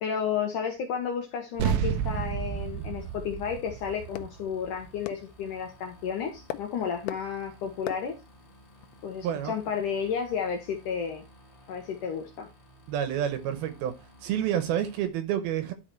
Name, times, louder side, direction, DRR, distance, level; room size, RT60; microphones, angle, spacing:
voice 1, 0.0-8.2 9.0-11.2 11.7-12.5, left 7 dB, 70° left, 2.0 m, -32 dB
sound 1, 1.5-15.1, equal, 35° left, 0.8 m, -55 dB
sound 2, 1.6-10.5, left 13 dB, 90° left, 2.0 m, -45 dB
sound 3, 1.6-6.4, right 9 dB, 90° right, 1.9 m, -32 dB
voice 2, 9.2-9.5 12.9-13.9 14.2-15.7, right 10 dB, 75° right, 2.5 m, -29 dB
11.5 x 4.8 x 4.4 m
omnidirectional pair, 5.0 m